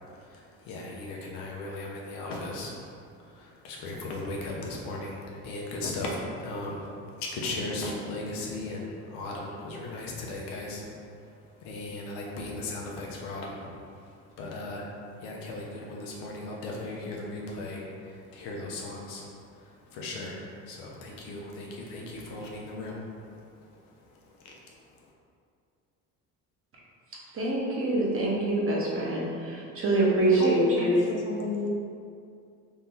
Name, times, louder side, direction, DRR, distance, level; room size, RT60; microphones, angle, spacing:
voice 1, 0.1-6.9 7.1-10.8 11.5-14.9 15.2-23.8 24.1-24.6, left 2 dB, 85° left, -2 dB, 0.8 m, -37 dB
voice 2, 27.3-31.0, right 2 dB, 40° right, -4 dB, 1.0 m, -25 dB
voice 3, 30.4-31.7, left 3 dB, 50° left, -2 dB, 0.7 m, -31 dB
3.2 x 2.8 x 3.8 m, 2.4 s
cardioid pair, 95°, 33 cm